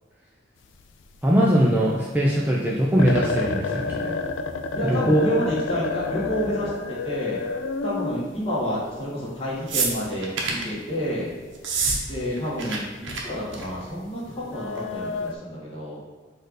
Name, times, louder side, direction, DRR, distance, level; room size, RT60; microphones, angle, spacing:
sound 1, 0.6-1.5 1.7-1.8 2.2-2.3 2.7-2.8 3.0-9.3 10.5-10.6 10.9-11.1 11.5-11.8 12.2-12.3 12.7-13.0 13.6-15.4, left 4 dB, 70° left, 0.3 m, -30 dB
voice 1, 1.2-4.1 4.9-5.2, equal, 10° right, -4 dB, 0.4 m, -21 dB
voice 2, 4.7-7.4 7.8-11.3 12.1-16.0, equal, 30° left, -7 dB, 1.3 m, -29 dB
sound 2, 9.7-10.7 11.6-12.0 12.3-12.8 13.0-13.2 13.5-13.8 14.8-14.9, right 4 dB, 75° right, 0.7 m, -26 dB
4.3 x 2.5 x 4.7 m, 1.4 s
head